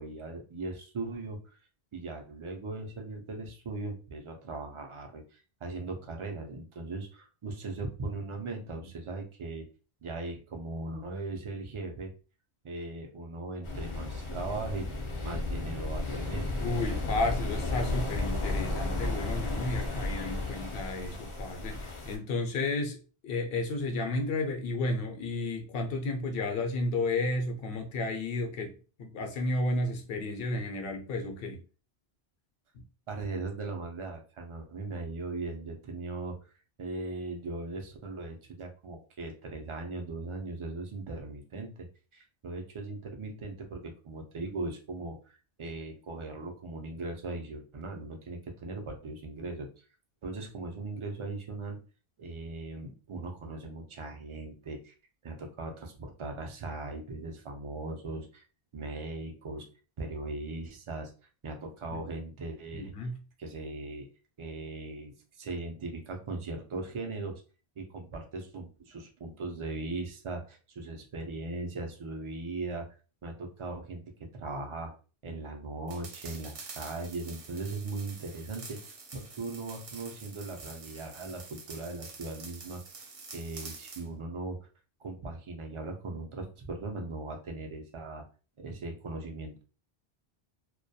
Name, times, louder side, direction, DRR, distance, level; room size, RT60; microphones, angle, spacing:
voice 1, 0.0-1.4 1.9-9.7 10.0-12.1 12.6-14.9 15.2-16.5 33.1-36.5 36.8-41.9 42.1-49.7 50.2-51.8 52.2-54.9 55.2-58.5 58.7-59.7 60.0-61.1 61.4-62.9 63.4-64.1 64.4-67.4 67.8-72.9 73.2-74.9 75.2-82.8 83.3-84.6 85.0-88.2 88.6-89.6, right 3 dB, 55° right, 0.3 m, -39 dB
sound 1, 13.6-22.2, left 2 dB, 40° left, 0.5 m, -33 dB
voice 2, 16.6-23.0 23.2-31.6 61.9-62.0 62.7-63.2, left 2 dB, 65° left, 0.8 m, -32 dB
sound 2, 75.9-84.1, right 4 dB, 70° right, 0.8 m, -47 dB
2.2 x 2.1 x 2.6 m
omnidirectional pair, 1.1 m